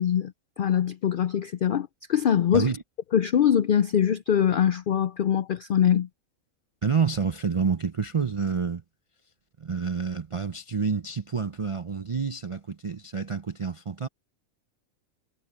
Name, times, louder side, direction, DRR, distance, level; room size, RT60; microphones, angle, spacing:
voice 1, 0.0-2.7 3.1-6.1, left 9 dB, 80° left, 0.4 m, -23 dB
voice 2, 6.8-8.8 9.6-14.1, right 5 dB, 55° right, 0.3 m, -28 dB
omnidirectional pair, 1.4 m